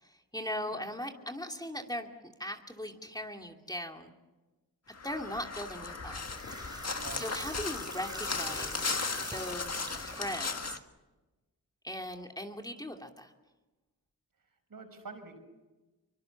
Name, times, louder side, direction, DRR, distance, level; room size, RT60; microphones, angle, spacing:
voice 1, 0.3-2.1 2.4-4.1 5.0-6.2 7.2-10.8 11.8-13.3, equal, 10° left, 3 dB, 2.7 m, -39 dB
Crow, 4.9-10.8, left 4 dB, 45° left, 1.8 m, -36 dB
sound 1, 6.0-10.4, right 1 dB, 10° right, 3.4 m, -45 dB
voice 2, 6.9-7.5 14.7-15.4, right 4 dB, 65° right, 6 dB, 6.0 m, -46 dB
24.5 x 24.0 x 7.2 m, 1.1 s
cardioid pair, 60°, 37 cm